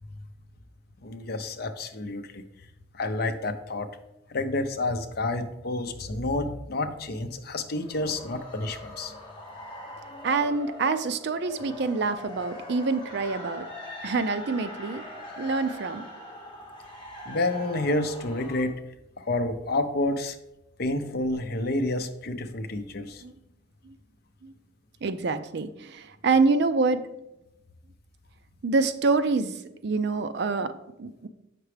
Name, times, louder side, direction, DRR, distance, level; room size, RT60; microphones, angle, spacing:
voice 1, 1.0-2.4 2.9-3.9 4.3-9.1 17.3-18.7 19.2-20.4 20.8-23.2, left 2 dB, 50° left, 8 dB, 0.6 m, -29 dB
sound 1, 7.7-18.7, left 1 dB, 25° left, 1.4 m, -42 dB
voice 2, 10.2-13.7 14.0-15.0 15.4-16.0 23.2-23.3 23.8-24.0 24.4-24.5 25.0-27.3 28.6-31.3, right 4 dB, 55° right, 11 dB, 0.4 m, -26 dB
7.9 x 5.9 x 3.3 m, 0.91 s
head